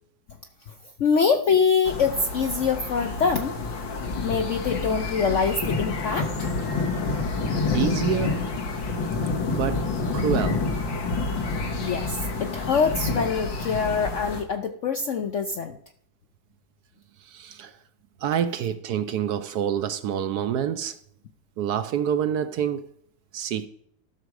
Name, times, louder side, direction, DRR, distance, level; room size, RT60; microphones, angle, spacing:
voice 1, 1.0-3.6 4.2-6.5 11.8-15.8, left 5 dB, 65° left, 0.7 m, -24 dB
sound 1, 1.8-14.4, left 3 dB, 90° left, 2.4 m, -28 dB
voice 2, 7.7-8.4 9.5-9.9 10.1-10.6 17.2-17.7 18.2-21.0 21.6-22.9 23.3-23.7, right 9 dB, 70° right, 1.1 m, -27 dB
12.5 x 6.4 x 4.7 m
omnidirectional pair, 2.0 m